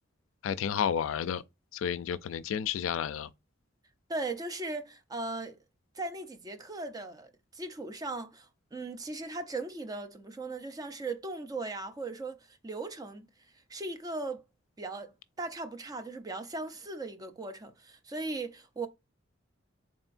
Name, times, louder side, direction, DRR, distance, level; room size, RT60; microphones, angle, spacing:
voice 1, 0.4-1.4 1.7-3.3, left 8 dB, 80° left, 0.3 m, -31 dB
voice 2, 4.1-5.6 5.9-13.3 13.7-14.4 14.8-15.1 15.4-18.9, right 2 dB, 20° right, 0.5 m, -38 dB
3.8 x 3.6 x 2.4 m
head